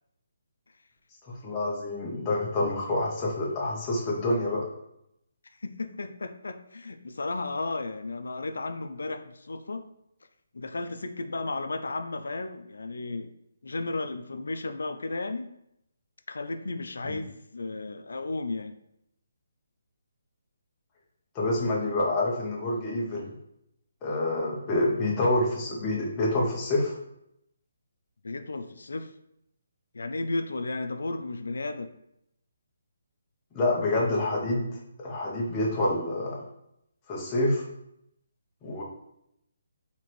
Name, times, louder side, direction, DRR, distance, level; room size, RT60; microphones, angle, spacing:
voice 1, 1.3-4.6 17.0-17.2 21.3-23.4 24.0-26.9 33.5-34.7 35.0-36.4 37.1-37.7 38.6-38.8, left 2 dB, 10° left, -4 dB, 0.5 m, -27 dB
voice 2, 5.6-9.9 10.5-13.3 13.6-15.5 16.3-18.8 28.2-29.1 29.9-31.9, left 2 dB, 90° left, 8 dB, 0.3 m, -34 dB
4.2 x 2.9 x 3.0 m, 0.79 s
hypercardioid pair, 180°, 0 cm